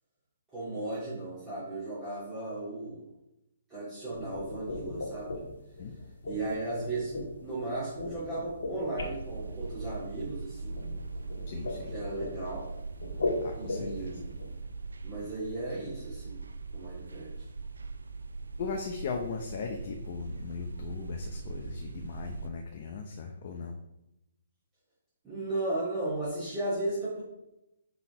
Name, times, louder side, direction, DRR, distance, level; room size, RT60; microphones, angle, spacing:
voice 1, 0.5-3.1 3.7-5.3 6.2-10.8 11.9-12.7 13.5-14.3 15.0-16.4 16.7-17.5 25.2-27.2, right 2 dB, 15° right, -11 dB, 2.5 m, -35 dB
sound 1, 4.1-14.6, left 2 dB, 70° left, 1.4 m, -38 dB
sound 2, 9.0-22.5, right 3 dB, 80° right, 0.5 m, -41 dB
voice 2, 11.5-12.0 13.4-14.2 18.6-23.7, left 5 dB, 50° left, 4 dB, 0.8 m, -38 dB
5.8 x 4.0 x 4.9 m, 0.88 s
hypercardioid pair, 140°, 0 cm